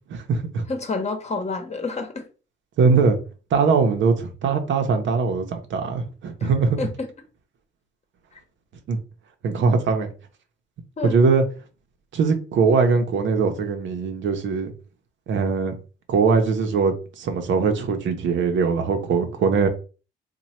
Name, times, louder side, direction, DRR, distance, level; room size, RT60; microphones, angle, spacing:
voice 1, 0.1-0.6 2.8-3.2 3.5-6.8 8.9-9.0 9.4-10.1 11.0-11.4 12.1-14.7 15.3-15.7 16.1-19.7, right 5 dB, 70° right, 0.7 m, -21 dB
voice 2, 0.7-2.3 6.4-6.5 6.8-7.1 11.0-11.2, left 3 dB, 35° left, 0.9 m, -29 dB
3.0 x 2.2 x 4.2 m
cardioid pair, 90°, 20 cm